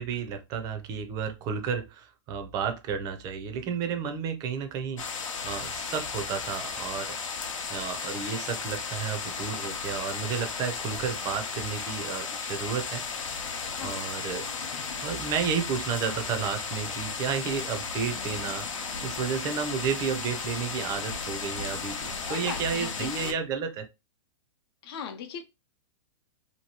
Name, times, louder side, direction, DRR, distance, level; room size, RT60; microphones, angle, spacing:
voice 1, 0.0-7.2 7.7-13.0 13.8-14.5 15.0-23.9, right 6 dB, 20° right, 7 dB, 0.5 m, -32 dB
sound 1, 5.0-23.3, left 5 dB, 85° left, 0.8 m, -35 dB
voice 2, 22.3-23.4 24.8-25.4, left 7 dB, 50° left, 6 dB, 0.7 m, -38 dB
2.8 x 2.7 x 2.8 m, 0.24 s
hypercardioid pair, 150°, 16 cm